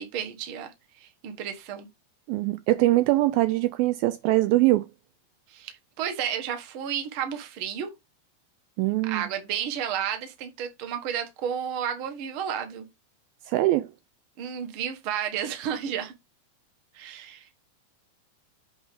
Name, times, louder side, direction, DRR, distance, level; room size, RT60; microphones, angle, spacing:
voice 1, 0.0-1.9 5.5-7.9 9.1-12.8 14.4-16.1 16.9-17.5, right 8 dB, 55° right, 1.5 m, -32 dB
voice 2, 2.3-4.9 8.8-9.2 13.5-13.9, right 17 dB, 80° right, 2.2 m, -22 dB
8.1 x 3.6 x 5.1 m
omnidirectional pair, 4.5 m